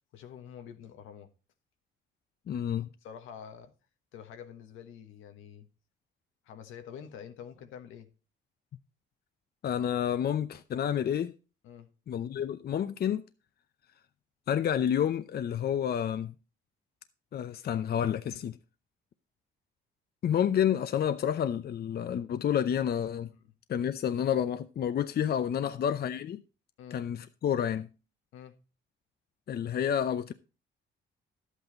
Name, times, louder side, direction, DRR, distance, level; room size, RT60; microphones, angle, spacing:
voice 1, 0.1-1.3 3.0-3.7 4.1-5.7 6.4-8.1 11.6-11.9 23.3-23.5 25.6-25.8 26.8-27.0 28.3-28.5, left 8 dB, 85° left, 1.4 m, -47 dB
voice 2, 2.5-2.9 9.6-11.3 12.1-13.2 14.5-16.3 17.3-18.6 20.2-23.3 23.7-26.4 26.9-27.9 29.5-30.3, left 9 dB, 50° left, 0.7 m, -29 dB
11.5 x 8.2 x 4.0 m
cardioid pair, 90°, 20 cm